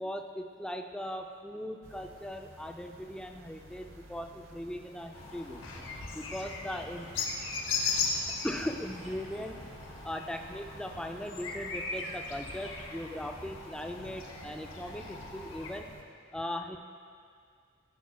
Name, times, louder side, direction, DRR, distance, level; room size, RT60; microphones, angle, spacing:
voice 1, 0.0-5.6 6.1-7.1 8.4-9.6 10.0-15.9 16.3-16.8, left 1 dB, 5° left, 4 dB, 0.3 m, -39 dB
sound 1, 1.8-16.0, right 1 dB, 80° right, 0.9 m, -53 dB
sound 2, 5.1-15.8, left 4 dB, 80° left, 0.8 m, -38 dB
sound 3, 5.5-10.9, equal, 25° right, 1.0 m, -52 dB
13.5 x 5.8 x 2.2 m, 2.2 s
head